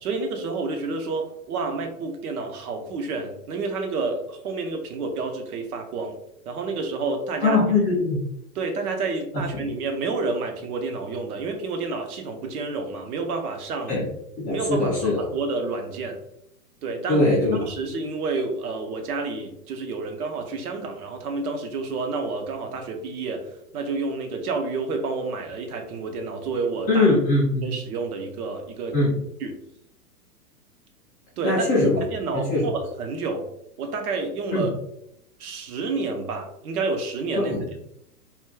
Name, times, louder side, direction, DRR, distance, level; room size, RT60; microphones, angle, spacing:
voice 1, 0.0-6.1 6.5-7.6 8.5-13.9 14.5-16.2 16.8-17.2 17.6-27.1 27.6-29.0 29.4-29.6 31.4-33.5 33.8-34.7 35.4-37.5, right 3 dB, 65° right, 4 dB, 0.9 m, -29 dB
voice 2, 7.4-8.2 9.6-9.7 13.9-14.0 14.4-15.2 17.1-17.6 26.9-27.7 28.9-29.2 31.4-32.0 32.3-32.7 34.5-34.7 37.4-37.8, left 2 dB, 15° left, -10 dB, 0.3 m, -21 dB
3.0 x 2.3 x 3.2 m, 0.77 s
hypercardioid pair, 125°, 48 cm